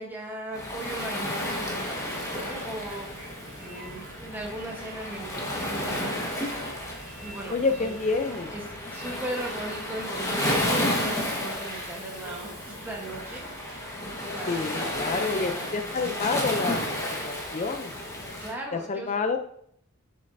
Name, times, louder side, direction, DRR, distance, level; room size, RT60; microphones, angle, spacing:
voice 1, 0.0-2.0 2.3-3.1 3.6-6.5 7.2-7.9 8.5-15.7 18.4-19.1, right 1 dB, 10° right, -2 dB, 1.1 m, -38 dB
Waves surf, 0.5-18.5, left 1 dB, 15° left, 1.3 m, -32 dB
sound 1, 1.1-16.7, right 2 dB, 60° right, 2.8 m, -47 dB
voice 2, 7.5-8.5 14.5-17.0 17.2-17.9 18.7-19.4, left 4 dB, 35° left, 6 dB, 0.4 m, -28 dB
7.9 x 6.6 x 2.6 m, 0.67 s
head